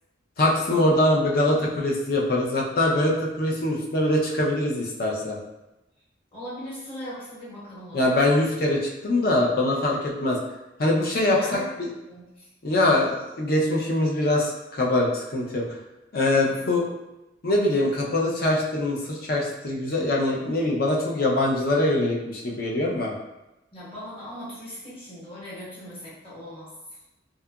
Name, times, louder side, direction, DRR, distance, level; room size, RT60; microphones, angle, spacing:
voice 1, 0.4-5.4 7.9-10.4 10.8-11.4 11.8-11.9 12.6-15.8 16.1-16.9 17.4-23.2, left 1 dB, 50° left, -2 dB, 0.5 m, -23 dB
voice 2, 6.3-8.2 11.1-11.7 12.1-12.5 16.4-16.6 23.7-27.0, equal, 30° left, -10 dB, 1.1 m, -39 dB
2.7 x 2.4 x 2.2 m, 0.96 s
head